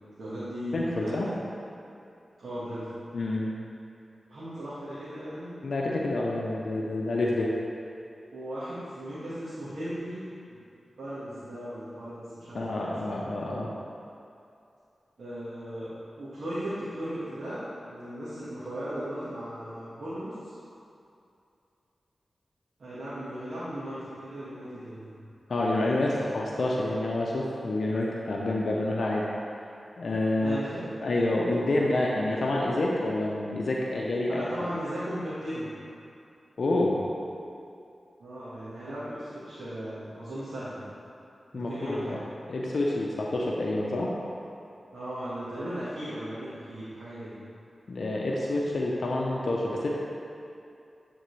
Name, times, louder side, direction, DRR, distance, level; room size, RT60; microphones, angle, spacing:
voice 1, 0.2-1.4 2.4-2.9 4.3-5.5 8.3-10.6 10.9-13.2 15.2-15.9 16.2-20.5 22.8-25.3 26.0-26.3 30.4-30.9 31.8-32.1 34.3-35.7 38.2-40.9 41.5-42.2 44.9-47.4, equal, 75° right, -12 dB, 1.4 m, -37 dB
voice 2, 0.7-1.3 3.1-3.5 5.6-7.5 12.5-13.7 25.5-29.3 30.0-30.6 31.0-34.5 36.6-37.0 41.5-42.2 42.5-44.1 47.9-49.9, left 2 dB, 75° left, -3 dB, 0.6 m, -28 dB
9.0 x 3.8 x 3.2 m, 2.6 s
cardioid pair, 40°, 0 cm